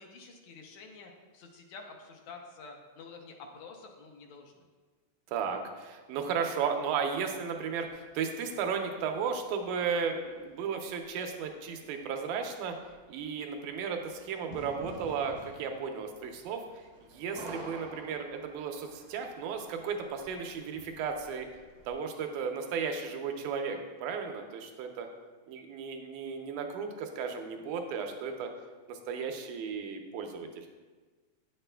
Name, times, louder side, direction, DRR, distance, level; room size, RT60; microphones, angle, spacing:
voice 1, 0.0-4.7, left 4 dB, 75° left, 2 dB, 1.9 m, -49 dB
voice 2, 5.3-12.8 13.1-21.5 21.9-25.1 25.5-28.5 28.9-30.7, right 6 dB, 85° right, 4 dB, 2.1 m, -34 dB
sound 1, 7.6-21.9, right 2 dB, 65° right, 0.9 m, -53 dB
Fire / Fireworks, 14.5-20.0, equal, 35° left, 0.9 m, -54 dB
8.8 x 6.6 x 2.2 m, 1.4 s
omnidirectional pair, 3.5 m